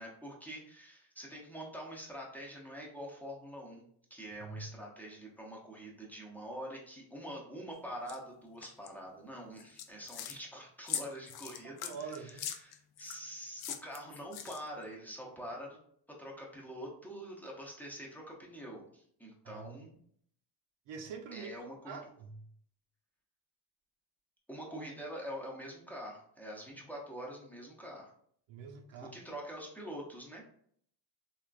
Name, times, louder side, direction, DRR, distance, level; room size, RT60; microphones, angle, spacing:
voice 1, 0.0-3.8 4.1-15.8 16.2-20.0 21.3-22.0 24.5-28.1 29.0-30.4, equal, 5° left, -3 dB, 0.7 m, -45 dB
sound 1, 8.1-8.2 8.6-8.9 9.6-10.4 10.9-13.2 13.6-14.8, left 9 dB, 55° left, 0.5 m, -41 dB
voice 2, 11.6-12.4 19.4-19.8 20.9-22.4 28.5-29.1, right 5 dB, 75° right, 5 dB, 0.7 m, -45 dB
3.5 x 2.4 x 2.4 m, 0.63 s
cardioid pair, 110°, 46 cm